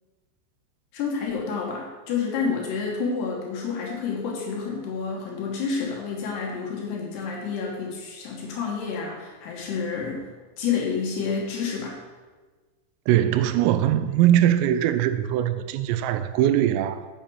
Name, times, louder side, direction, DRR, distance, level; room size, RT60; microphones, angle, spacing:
voice 1, 0.9-10.3 10.6-12.0, left 5 dB, 70° left, 2.9 m, -29 dB
voice 2, 13.1-17.1, right 11 dB, 85° right, 3.2 m, -21 dB
7.3 x 7.2 x 7.0 m
omnidirectional pair, 5.9 m